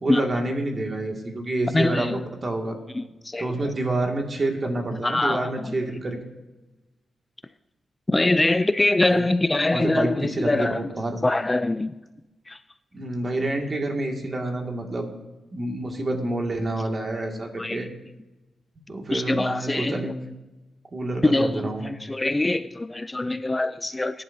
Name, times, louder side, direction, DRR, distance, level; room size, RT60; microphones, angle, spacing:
voice 1, 0.0-2.8 3.4-6.2 9.1-9.3 9.7-11.2 12.9-15.1 15.5-17.9 18.9-20.2 20.9-21.8, right 2 dB, 40° right, 2 dB, 2.1 m, -28 dB
voice 2, 1.7-2.2 2.9-3.5 5.0-5.5 8.1-10.8 11.2-11.9 12.5-12.6 17.6-17.9 19.1-20.0 21.2-24.2, left 2 dB, 20° left, 12 dB, 0.4 m, -23 dB
19.5 x 10.5 x 2.7 m, 1.1 s
cardioid pair, 90°, 0 cm